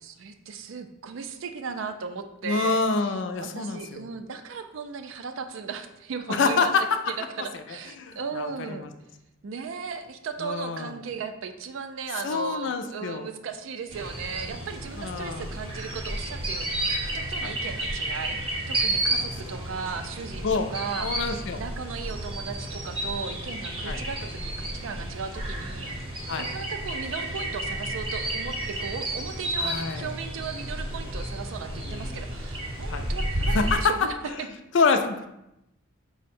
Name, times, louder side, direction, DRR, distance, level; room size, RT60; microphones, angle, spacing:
voice 1, 0.0-6.7 7.1-8.9 9.4-25.9 26.4-34.5, right 5 dB, 70° right, 8 dB, 0.4 m, -36 dB
voice 2, 2.4-4.1 6.3-7.0 8.0-8.9 10.4-10.9 12.2-13.3 15.0-15.5 17.4-17.5 19.1-19.3 20.4-20.7 21.0-21.6 23.9-24.0 26.3-26.5 29.6-30.1 31.7-32.2 32.9-33.1 33.5-33.9 34.3-34.4 34.7-35.3, left 4 dB, 60° left, 8 dB, 0.4 m, -27 dB
sound 1, 13.9-33.8, right 1 dB, 25° right, 0.7 m, -31 dB
4.5 x 2.1 x 4.2 m, 0.88 s
head